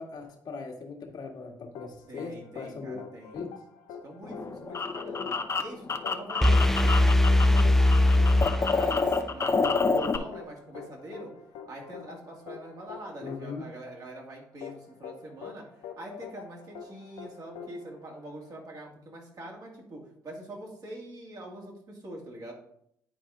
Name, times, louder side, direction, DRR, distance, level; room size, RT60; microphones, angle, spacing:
voice 1, 0.0-3.0 3.3-3.5 13.2-13.7, left 4 dB, 55° left, 2 dB, 1.7 m, -39 dB
sound 1, 1.7-18.6, left 7 dB, 75° left, 0.7 m, -45 dB
voice 2, 2.1-3.4 4.0-5.3 5.6-7.8 8.1-11.3 11.7-15.6 16.0-22.5, right 1 dB, 50° right, -1 dB, 2.7 m, -44 dB
sound 2, 4.2-7.6 7.9-10.2, left 4 dB, 35° left, 0.8 m, -28 dB
sound 3, 6.4-9.3, left 1 dB, 5° left, 0.4 m, -21 dB
9.8 x 4.8 x 3.8 m, 0.71 s
hypercardioid pair, 50°, 8 cm